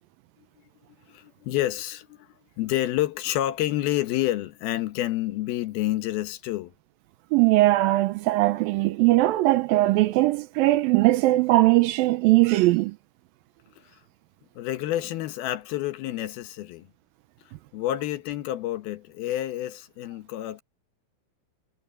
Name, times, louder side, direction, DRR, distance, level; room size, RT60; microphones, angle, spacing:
voice 1, 1.1-2.3 2.6-6.7 13.8-14.0 14.6-16.9 17.7-20.6, left 14 dB, 80° left, 3.0 m, -29 dB
voice 2, 7.3-13.0, right 18 dB, 80° right, 2.4 m, -20 dB
omnidirectional pair, 4.3 m